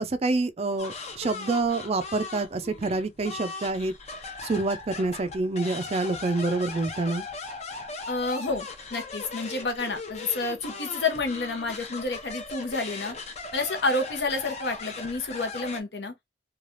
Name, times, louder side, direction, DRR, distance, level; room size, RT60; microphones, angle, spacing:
voice 1, 0.0-3.9 4.4-7.2, right 3 dB, 35° right, 0.4 m, -27 dB
sound 1, 0.8-15.8, left 3 dB, 40° left, 0.6 m, -39 dB
voice 2, 8.1-13.2 13.5-16.1, left 3 dB, 70° left, 0.8 m, -29 dB
3.2 x 2.3 x 2.5 m
head